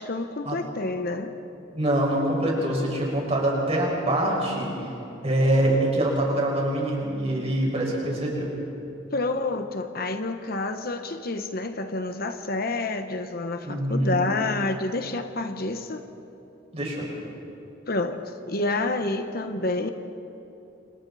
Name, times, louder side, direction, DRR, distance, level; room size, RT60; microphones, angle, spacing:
voice 1, 0.0-1.3 9.1-16.0 17.9-19.9, left 2 dB, 50° left, 7 dB, 1.1 m, -28 dB
voice 2, 1.7-4.7 5.2-8.5 13.7-14.2 16.7-17.1, right 1 dB, 35° right, -2 dB, 5.7 m, -24 dB
30.0 x 26.5 x 4.2 m, 3.0 s
head